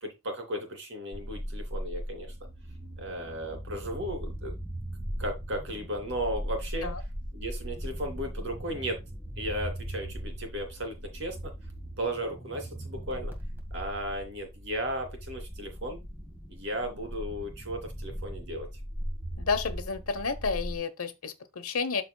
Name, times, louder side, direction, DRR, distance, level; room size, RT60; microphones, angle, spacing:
voice 1, 0.0-2.3 3.0-4.6 5.2-6.9 7.3-9.0 9.4-11.5 12.0-13.3 13.7-16.0 16.5-18.7, equal, 55° right, 2.9 m, -35 dB
sound 1, 1.1-20.8, equal, 10° right, 1.7 m, -39 dB
voice 2, 19.4-22.0, left 5 dB, 75° left, 1.0 m, -31 dB
12.5 x 4.4 x 2.3 m
head